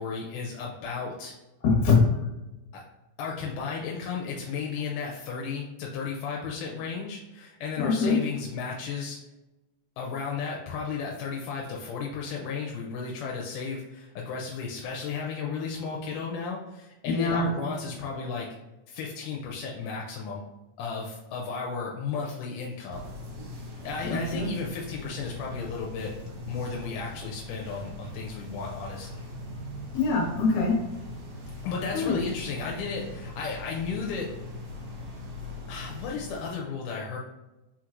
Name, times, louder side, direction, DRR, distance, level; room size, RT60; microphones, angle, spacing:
voice 1, 0.0-1.3 2.7-2.8 3.2-9.2 10.0-18.5 18.9-20.4 20.8-23.0 23.8-26.1 26.5-29.2 31.6-34.3 35.7-37.2, left 5 dB, 85° left, -2 dB, 2.2 m, -34 dB
voice 2, 1.6-2.1 7.8-8.1 17.1-17.5 24.1-24.5 29.9-30.7 31.9-32.2, left 4 dB, 70° left, -1 dB, 2.5 m, -23 dB
sound 1, 22.9-36.5, left 2 dB, 50° right, 1.7 m, -41 dB
4.5 x 4.0 x 2.5 m, 1.0 s
omnidirectional pair, 3.6 m